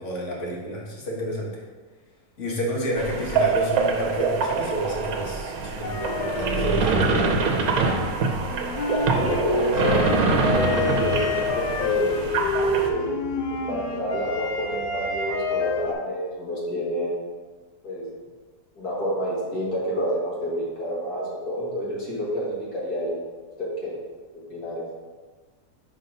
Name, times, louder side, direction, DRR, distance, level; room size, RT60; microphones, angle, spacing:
voice 1, 0.0-1.6 2.4-7.4, equal, 50° left, -2 dB, 1.5 m, -30 dB
sound 1, 3.0-12.9, right 4 dB, 65° right, 1.1 m, -24 dB
sound 2, 5.8-15.9, left 3 dB, 85° left, 1.3 m, -28 dB
voice 2, 9.1-12.3 12.7-13.1 13.5-17.1 17.8-18.1 18.8-23.1 23.6-23.9 24.3-24.8, equal, 65° left, -6 dB, 2.2 m, -29 dB
5.3 x 4.0 x 5.3 m, 1.4 s
omnidirectional pair, 1.8 m